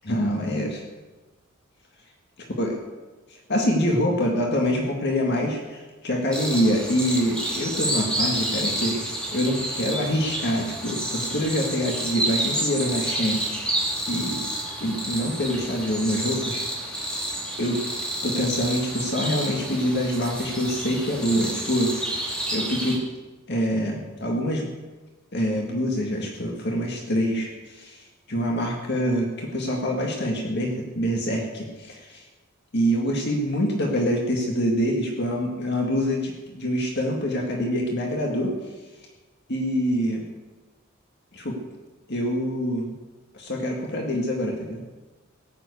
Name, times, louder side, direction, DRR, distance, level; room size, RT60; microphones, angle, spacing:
voice 1, 0.0-0.8 2.6-2.7 3.5-13.7 14.1-14.4 14.8-17.1 17.6-17.8 18.2-23.0 23.5-24.7 25.3-32.3 32.7-38.5 39.5-40.2 41.3-41.6 42.1-42.9 43.3-44.8, equal, 55° left, 0 dB, 1.9 m, -25 dB
sound 1, 6.3-23.0, right 1 dB, 5° left, 2.8 m, -29 dB
17.0 x 7.7 x 8.3 m, 1.2 s
head